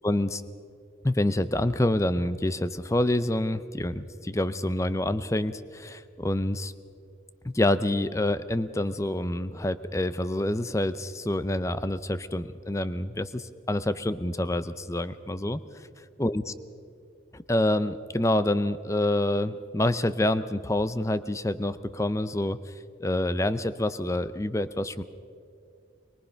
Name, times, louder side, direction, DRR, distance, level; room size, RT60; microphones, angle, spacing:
voice 1, 0.0-0.4 1.0-6.7 7.4-15.6 16.2-16.5 17.3-25.0, left 1 dB, 15° left, 13 dB, 0.6 m, -27 dB
23.0 x 23.0 x 5.7 m, 2.3 s
head